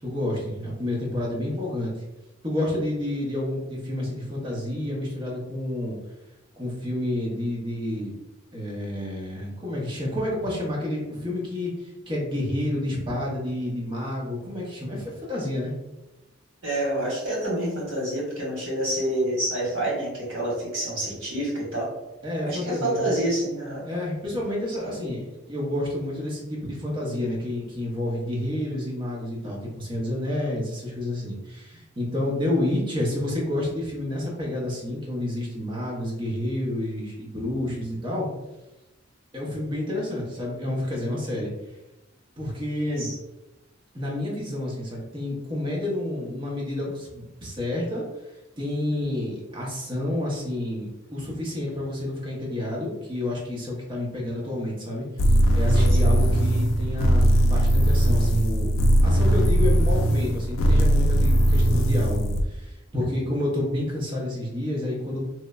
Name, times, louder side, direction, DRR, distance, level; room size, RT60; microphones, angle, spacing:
voice 1, 0.0-1.9 2.4-6.0 6.6-8.2 8.5-11.7 12.1-15.7 22.2-23.0 23.8-38.3 39.3-41.5 42.4-43.1 43.9-48.0 48.6-58.7 59.0-65.2, left 1 dB, 25° right, -3 dB, 0.7 m, -29 dB
voice 2, 16.6-21.9 22.4-23.8 24.8-25.0 42.8-43.1 49.0-49.2 55.7-56.0 63.0-63.2, right 1 dB, 75° right, -5 dB, 1.3 m, -28 dB
sound 1, 55.2-62.4, equal, 85° left, 0.3 m, -19 dB
3.0 x 2.0 x 2.3 m, 1.0 s
head